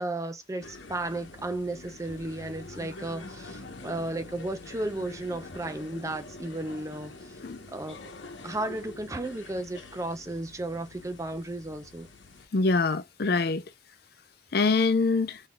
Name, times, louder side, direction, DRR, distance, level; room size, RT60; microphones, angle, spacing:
voice 1, 0.0-7.3 7.7-8.0 8.4-12.1, right 2 dB, 15° right, 0.5 m, -34 dB
sound 1, 0.6-12.5, left 2 dB, 80° left, 1.0 m, -45 dB
voice 2, 12.5-13.6 14.5-15.4, left 3 dB, 55° left, 0.5 m, -24 dB
3.8 x 3.5 x 2.3 m
head